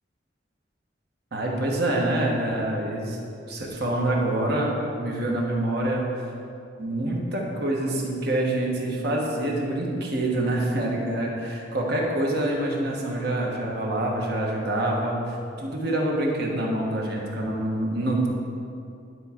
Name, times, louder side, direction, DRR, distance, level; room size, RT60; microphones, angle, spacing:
voice 1, 1.3-3.2 3.5-6.0 6.8-18.3, right 1 dB, 60° right, -2 dB, 1.3 m, -26 dB
10.5 x 4.7 x 4.4 m, 2.5 s
head